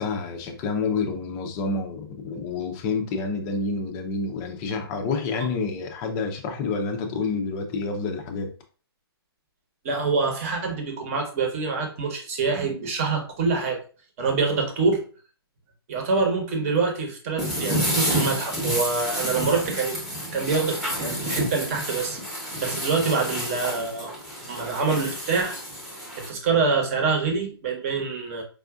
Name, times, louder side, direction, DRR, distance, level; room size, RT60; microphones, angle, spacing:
voice 1, 0.0-8.5, left 4 dB, 20° left, 4 dB, 0.5 m, -28 dB
voice 2, 9.8-13.8 14.2-15.0 15.9-20.0 20.3-24.1 24.5-25.6 26.2-28.4, right 4 dB, 35° right, 2 dB, 1.0 m, -25 dB
sound 1, 17.4-26.3, equal, ahead, 0.9 m, -29 dB
4.7 x 2.5 x 2.3 m, 0.38 s
hypercardioid pair, 150°, 13 cm